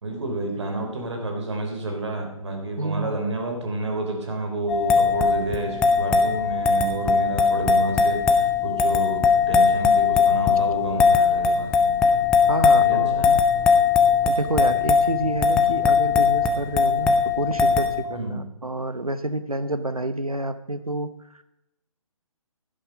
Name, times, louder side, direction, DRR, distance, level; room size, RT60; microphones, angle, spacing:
voice 1, 0.0-12.0 12.8-13.4 18.1-18.5, right 2 dB, 55° right, 3 dB, 3.6 m, -30 dB
voice 2, 2.8-3.2 12.5-13.4 14.2-21.4, right 2 dB, 90° right, 11 dB, 1.0 m, -29 dB
sound 1, 4.7-18.0, left 5 dB, 5° left, 0.4 m, -20 dB
11.5 x 11.5 x 5.1 m, 0.84 s
figure-of-eight pair, 135°, 18 cm